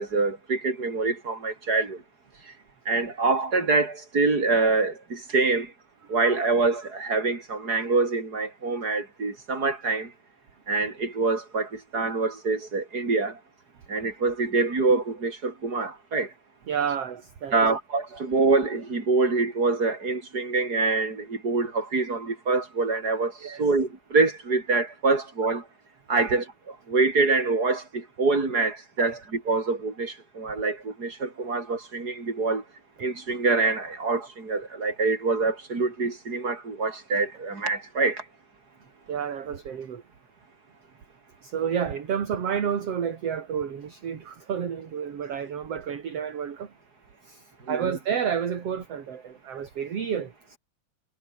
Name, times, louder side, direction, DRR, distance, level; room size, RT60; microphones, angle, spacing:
voice 1, 0.0-2.0 2.5-2.6 2.9-5.7 6.1-10.1 10.7-13.4 13.9-16.3 17.5-25.6 26.1-32.6 33.0-38.2 47.7-47.9, right 3 dB, 25° right, 5.2 m, -25 dB
voice 2, 16.7-17.8 23.4-23.7 26.2-26.3 29.0-29.1 31.4-31.5 39.1-40.0 41.4-46.7 47.2-50.6, right 7 dB, 45° right, 3.2 m, -30 dB
omnidirectional pair, 4.0 m